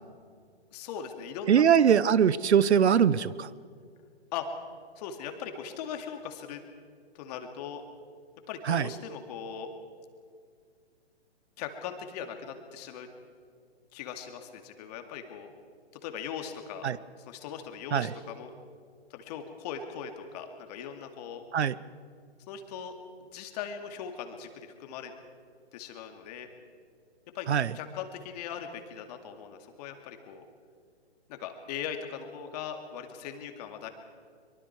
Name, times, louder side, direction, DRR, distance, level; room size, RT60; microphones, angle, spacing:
voice 1, 0.7-1.9 4.3-6.6 7.1-7.8 8.5-9.7 11.6-13.1 13.9-15.5 16.0-16.9 17.2-18.5 19.1-21.4 22.5-23.0 23.3-25.1 25.7-26.5 27.3-27.5 27.7-30.4 31.3-33.9, left 7 dB, 35° left, 5 dB, 2.3 m, -39 dB
voice 2, 1.5-3.5 8.7-8.9 16.8-17.0 17.9-18.1 21.5-21.7 27.5-27.7, right 8 dB, 75° right, 19 dB, 0.8 m, -22 dB
24.0 x 23.5 x 4.8 m, 2.1 s
hypercardioid pair, 135°, 34 cm